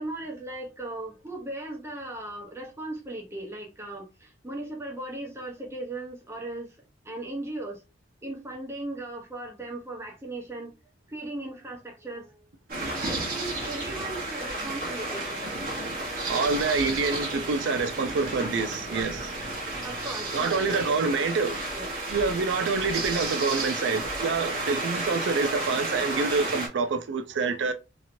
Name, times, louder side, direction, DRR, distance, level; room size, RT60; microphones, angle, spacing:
voice 1, 0.0-6.8 7.0-7.8 8.2-10.8 11.1-12.5 13.0-15.6 16.8-17.0 18.1-18.5 19.8-21.0 21.7-21.9, right 2 dB, 15° right, 0.8 m, -37 dB
sound 1, 12.7-26.7, right 2 dB, 50° right, 1.1 m, -32 dB
voice 2, 16.3-19.4 20.3-21.6 22.1-27.7, right 4 dB, 80° right, 0.4 m, -27 dB
2.9 x 2.8 x 2.6 m
head